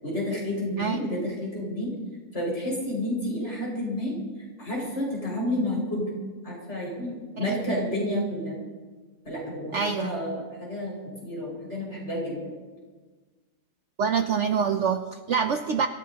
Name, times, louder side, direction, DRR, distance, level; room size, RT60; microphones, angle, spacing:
voice 1, 0.0-1.9 2.3-4.2 4.6-6.1 6.4-8.6 9.2-12.4, left 1 dB, 45° left, -4 dB, 6.1 m, -30 dB
voice 2, 9.7-10.2 14.0-15.9, right 6 dB, 60° right, 7 dB, 0.8 m, -25 dB
25.5 x 15.0 x 2.9 m, 1.3 s
omnidirectional pair, 1.7 m